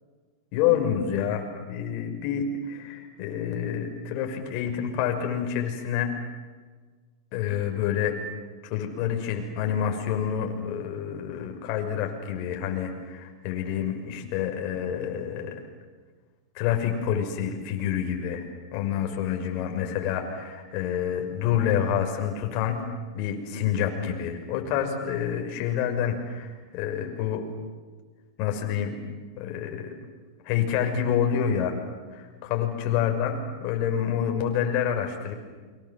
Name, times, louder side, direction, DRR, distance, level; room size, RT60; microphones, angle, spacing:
voice 1, 0.5-6.1 7.3-8.2 8.6-15.6 16.5-18.5 18.7-22.8 23.1-27.4 28.4-29.0 29.4-29.9 30.4-31.7 32.1-35.3, left 9 dB, 50° left, 4 dB, 6.0 m, -28 dB
29.5 x 24.5 x 7.5 m, 1.4 s
hypercardioid pair, 120°, 2 cm